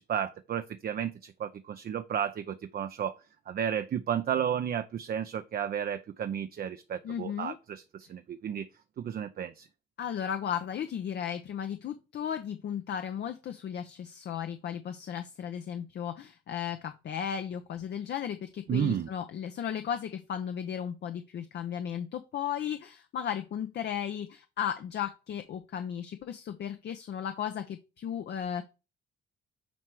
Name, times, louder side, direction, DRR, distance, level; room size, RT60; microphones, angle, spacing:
voice 1, 0.0-3.2 3.5-8.7 9.0-9.7 18.7-19.1, right 9 dB, 50° right, 0.5 m, -32 dB
voice 2, 7.0-7.6 10.0-28.6, left 9 dB, 60° left, 0.7 m, -35 dB
9.2 x 3.2 x 4.7 m
cardioid pair, 90°, 20 cm